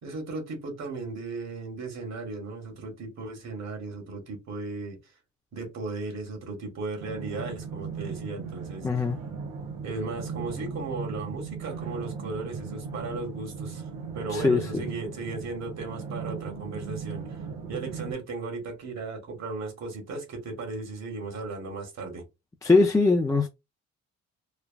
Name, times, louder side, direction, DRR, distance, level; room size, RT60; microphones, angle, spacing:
voice 1, 0.0-5.0 5.5-8.9 9.8-13.9 14.1-22.2, right 3 dB, 60° right, 1.5 m, -36 dB
sound 1, 7.0-18.1, right 5 dB, 85° right, 1.0 m, -37 dB
voice 2, 8.8-9.2 14.3-14.8 22.6-23.5, left 3 dB, 10° left, 0.4 m, -21 dB
3.2 x 2.3 x 2.2 m
cardioid pair, 90°, 30 cm